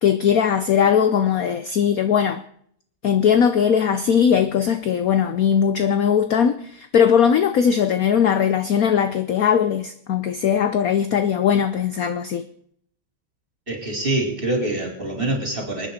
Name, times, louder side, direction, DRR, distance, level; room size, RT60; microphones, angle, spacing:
voice 1, 0.0-2.4 3.0-12.5, left 8 dB, 65° left, 0.9 m, -19 dB
voice 2, 13.7-15.9, right 2 dB, 25° right, 4.6 m, -25 dB
27.0 x 9.7 x 4.2 m
omnidirectional pair, 2.3 m